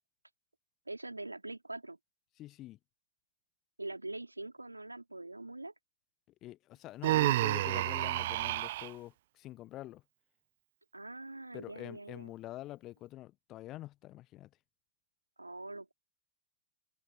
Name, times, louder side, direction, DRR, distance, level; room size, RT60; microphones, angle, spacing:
voice 1, 0.9-2.0 3.8-5.7 10.9-12.3 15.4-15.9, right 2 dB, 85° right, 3.6 m, -43 dB
voice 2, 2.4-2.8 6.4-10.0 11.5-14.5, left 15 dB, 35° left, 1.4 m, -46 dB
Human voice, 7.0-8.9, right 15 dB, 55° right, 0.3 m, -30 dB
figure-of-eight pair, 90°, 0 cm